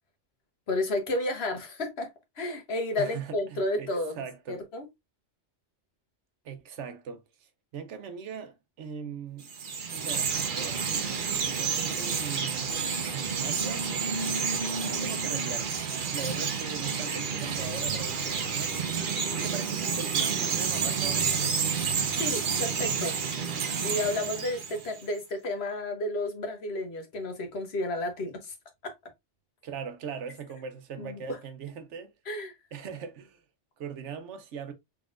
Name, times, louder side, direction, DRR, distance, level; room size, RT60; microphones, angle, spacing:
voice 1, 0.7-2.1 2.4-4.2 4.5-4.8 22.1-23.2 23.8-28.5 28.8-28.9 31.0-31.4 32.3-32.5, left 1 dB, 60° left, 1.2 m, -31 dB
voice 2, 3.0-3.9 4.2-4.6 6.4-9.5 9.9-14.0 14.9-15.8 16.1-18.9 19.3-21.5 29.6-32.1 32.7-33.4 33.8-34.7, right 6 dB, 75° right, 1.0 m, -40 dB
Chirp tweet, 9.4-25.0, right 6 dB, 50° right, 0.8 m, -30 dB
3.9 x 3.5 x 2.4 m
omnidirectional pair, 1.2 m